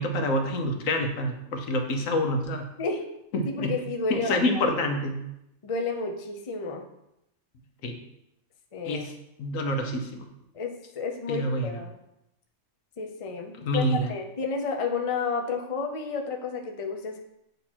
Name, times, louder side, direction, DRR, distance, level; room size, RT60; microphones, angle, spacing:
voice 1, 0.0-2.7 3.3-3.7 4.1-5.2 7.8-8.0 8.8-9.1 9.4-10.2 11.3-11.8 13.6-14.1, left 1 dB, 75° left, 4 dB, 1.2 m, -27 dB
voice 2, 3.5-4.6 5.6-6.8 8.7-9.0 10.5-11.9 13.0-13.8 14.1-17.2, left 4 dB, 40° left, 2 dB, 0.5 m, -31 dB
8.0 x 3.0 x 4.3 m, 0.84 s
omnidirectional pair, 1.4 m